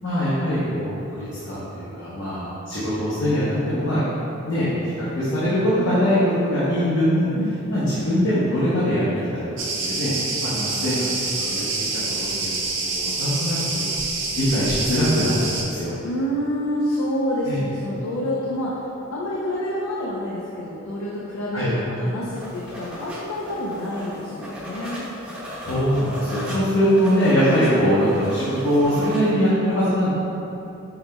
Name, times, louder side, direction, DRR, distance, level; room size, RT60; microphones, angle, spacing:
voice 1, 0.0-4.0 4.4-4.7 5.0-7.3 7.7-9.0 9.3-9.5 9.8-10.1 10.4-11.6 12.4-13.9 14.3-15.9 17.4-17.6 21.5-21.7 25.6-30.1, equal, 65° left, -10 dB, 0.9 m, -22 dB
Cricket, 9.6-15.6, right 3 dB, 65° right, 0.6 m, -27 dB
voice 2, 10.5-11.1 16.0-18.7 19.1-25.0 26.4-26.7, equal, 85° left, -5 dB, 0.6 m, -28 dB
sound 1, 22.3-29.3, equal, 5° right, 0.7 m, -36 dB
5.6 x 4.1 x 2.2 m, 2.9 s
head